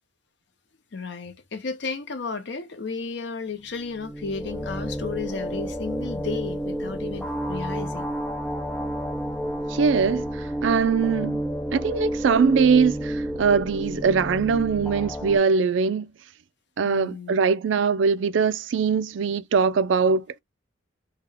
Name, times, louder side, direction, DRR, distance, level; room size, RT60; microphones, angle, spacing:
voice 1, 0.9-8.1 16.8-17.4, left 4 dB, 65° left, 0.6 m, -33 dB
sound 1, 3.8-15.4, equal, 5° left, 0.4 m, -31 dB
voice 2, 9.7-11.4 11.7-16.1 16.8-20.4, right 5 dB, 80° right, 0.4 m, -22 dB
3.6 x 2.2 x 3.3 m
head